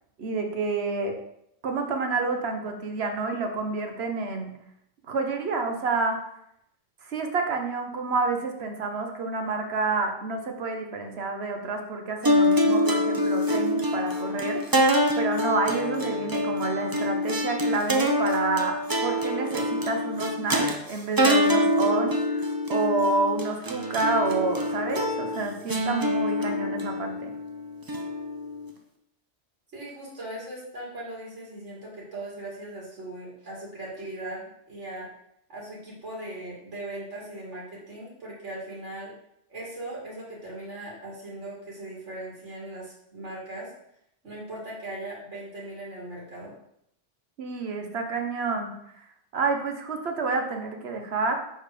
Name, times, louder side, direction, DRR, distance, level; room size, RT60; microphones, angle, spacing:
voice 1, 0.2-1.2 1.6-4.5 5.1-6.2 7.0-14.8 15.2-27.3 47.4-49.0 49.3-51.4, right 3 dB, 65° right, 4 dB, 1.2 m, -29 dB
sound 1, 12.2-28.7, left 1 dB, 25° right, 0.6 m, -25 dB
voice 2, 29.7-35.1 35.5-39.1 39.5-43.7 44.2-46.6, right 1 dB, 85° right, -5 dB, 2.5 m, -39 dB
6.4 x 4.4 x 4.9 m, 0.75 s
omnidirectional pair, 1.2 m